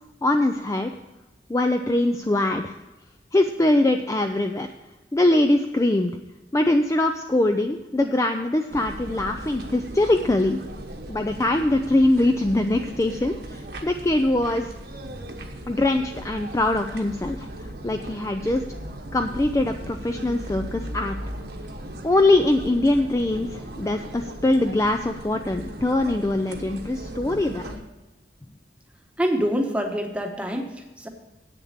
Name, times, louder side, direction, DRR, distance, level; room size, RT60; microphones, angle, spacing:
voice 1, 0.2-0.9 1.5-2.8 3.3-4.7 5.1-6.2 6.5-10.6 11.1-14.7 15.7-18.6 19.1-21.2 22.0-27.7, left 2 dB, 15° left, 6 dB, 0.4 m, -22 dB
sound 1, 8.7-27.8, right 1 dB, 65° right, 1.2 m, -37 dB
voice 2, 29.2-31.1, equal, 5° right, 3 dB, 1.0 m, -26 dB
8.6 x 6.8 x 7.2 m, 1.1 s
head